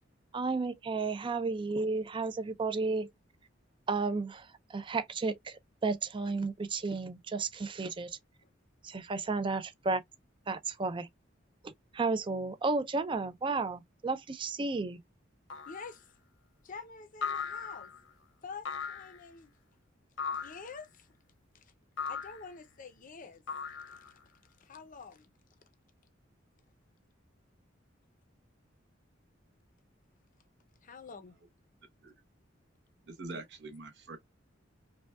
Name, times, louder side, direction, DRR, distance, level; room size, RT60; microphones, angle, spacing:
voice 1, 0.3-3.1 3.9-8.2 8.8-10.0 10.5-11.1 11.6-15.0, right 3 dB, 25° right, 0.4 m, -33 dB
sound 1, 15.5-15.9 17.2-18.0 18.7-19.2 20.2-20.7 22.0-22.5 23.5-24.2, left 6 dB, 90° left, 1.1 m, -38 dB
voice 2, 15.7-16.0 16.6-17.9 18.4-19.5 20.3-21.1 21.5-21.7 22.1-23.4 23.9-24.1 24.6-25.3 30.8-31.3 33.3-33.4, left 5 dB, 45° left, 0.6 m, -47 dB
voice 3, 33.1-34.2, right 3 dB, 65° right, 0.9 m, -44 dB
5.1 x 2.2 x 2.3 m
head